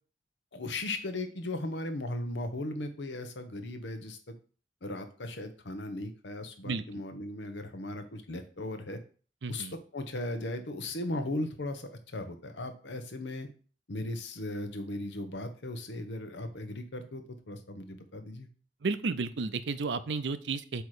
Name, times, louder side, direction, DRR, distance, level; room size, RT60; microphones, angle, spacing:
voice 1, 0.5-4.3 4.8-9.0 9.5-9.7 9.9-13.5 13.9-18.5, left 1 dB, 85° left, 7 dB, 1.0 m, -37 dB
voice 2, 6.6-7.0 9.4-9.8 18.8-20.8, right 4 dB, 80° right, 13 dB, 0.5 m, -33 dB
8.0 x 3.1 x 4.9 m, 0.39 s
head